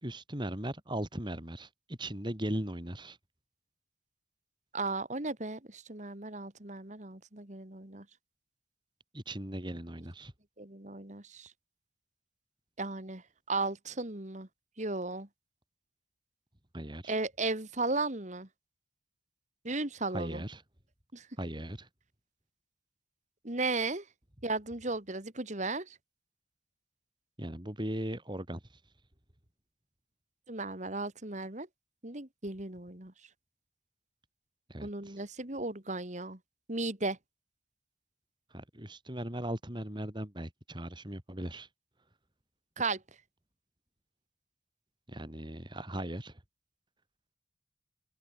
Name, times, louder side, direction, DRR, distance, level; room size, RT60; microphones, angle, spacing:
voice 1, 0.0-3.2 9.1-10.3 16.7-17.1 20.1-20.6 21.4-21.9 27.4-28.6 34.7-35.2 38.5-41.7 45.1-46.4, right 1 dB, 25° right, 3.8 m, -38 dB
voice 2, 4.7-8.0 10.6-11.5 12.8-13.2 13.5-14.5 14.8-15.3 17.1-18.5 19.6-20.4 21.1-21.3 23.4-24.0 24.4-25.9 30.5-31.7 32.0-33.1 34.8-36.4 36.7-37.2 42.8-43.0, right 3 dB, 40° right, 2.4 m, -35 dB
open air
head